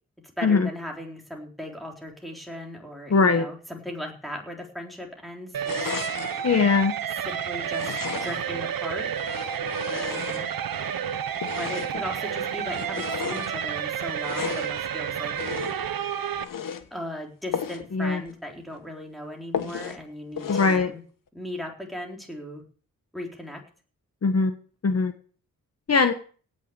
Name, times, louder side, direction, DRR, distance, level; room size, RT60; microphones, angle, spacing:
voice 1, 0.4-5.7 7.3-7.9 8.2-9.1 9.8-10.5 11.6-15.3 16.9-21.0 21.3-22.6 23.1-23.6, equal, ahead, 1 dB, 3.9 m, -37 dB
voice 2, 3.1-3.5 6.4-6.9 17.9-18.2 20.5-20.9 24.2-24.6 24.8-25.1 25.9-26.1, left 4 dB, 50° left, 8 dB, 1.2 m, -20 dB
sound 1, 5.5-16.4, right 8 dB, 85° right, 1.1 m, -30 dB
sound 2, 5.6-6.5 7.6-8.6 9.1-10.8 11.4-12.1 12.6-13.5 14.2-14.8 15.3-15.9 16.4-16.9 17.5-17.9 18.3-18.4 18.7-18.8 19.5-20.0 20.4-20.9, left 7 dB, 70° left, 1.5 m, -34 dB
17.5 x 6.6 x 8.8 m, 0.41 s
wide cardioid pair, 145°, 34 cm